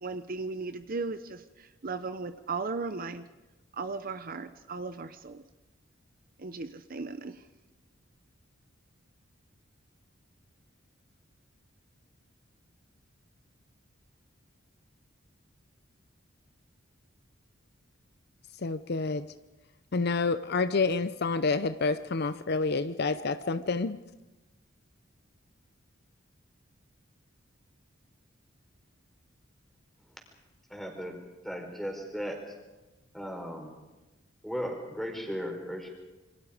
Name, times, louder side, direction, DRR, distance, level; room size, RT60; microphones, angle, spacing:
voice 1, 0.0-3.2 3.7-5.4 6.4-7.4, right 4 dB, 45° right, 0.8 m, -36 dB
voice 2, 18.6-19.3 19.9-24.0, left 4 dB, 55° left, 0.7 m, -28 dB
voice 3, 30.7-31.2 31.4-32.5 33.1-33.7 34.4-35.9, equal, ahead, 4.3 m, -36 dB
27.5 x 24.0 x 5.1 m
head